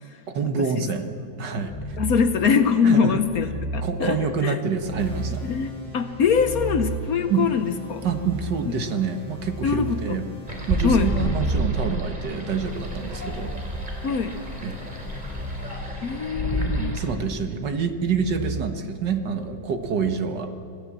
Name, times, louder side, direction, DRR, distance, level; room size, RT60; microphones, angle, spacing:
voice 1, 0.3-2.0 2.8-3.2 3.8-5.4 7.3-7.5 8.0-10.3 10.7-13.5 14.6-14.8 16.7-20.5, right 6 dB, 65° right, 6 dB, 2.0 m, -27 dB
sound 1, 1.6-2.2 3.0-3.7 4.7-5.4 6.0-7.0 7.9-8.5 9.0-9.9 10.9-13.6 14.9-15.4 16.3-16.8 17.9-19.2 19.6-19.9, right 1 dB, 20° left, 6.8 m, -33 dB
voice 2, 2.0-4.6 5.4-8.1 8.6-8.7 9.6-10.2 10.8-11.1 14.0-14.3 16.0-17.0, left 6 dB, 60° left, 9 dB, 1.2 m, -23 dB
sound 2, 5.0-16.3, left 4 dB, 5° left, 5.7 m, -44 dB
sound 3, 10.5-17.1, right 1 dB, 25° right, 3.5 m, -31 dB
26.5 x 16.0 x 7.5 m, 2.7 s
omnidirectional pair, 2.0 m